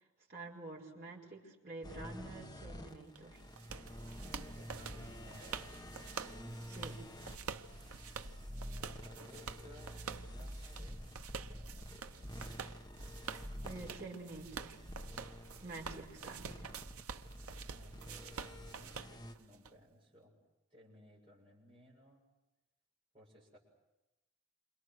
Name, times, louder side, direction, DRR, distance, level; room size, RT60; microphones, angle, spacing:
voice 1, 0.3-3.4 6.7-7.0 13.6-14.8 15.6-16.7, right 2 dB, 45° right, -2 dB, 5.6 m, -48 dB
sound 1, 1.8-19.3, equal, 20° left, 1.3 m, -49 dB
sound 2, 3.1-19.7, right 6 dB, 90° right, 0.9 m, -48 dB
voice 2, 4.3-5.8 8.4-11.0 11.5-12.4 17.7-20.4 20.7-22.3 23.1-23.6, equal, 25° right, -5 dB, 7.6 m, -60 dB
28.5 x 27.0 x 6.5 m, 0.98 s
head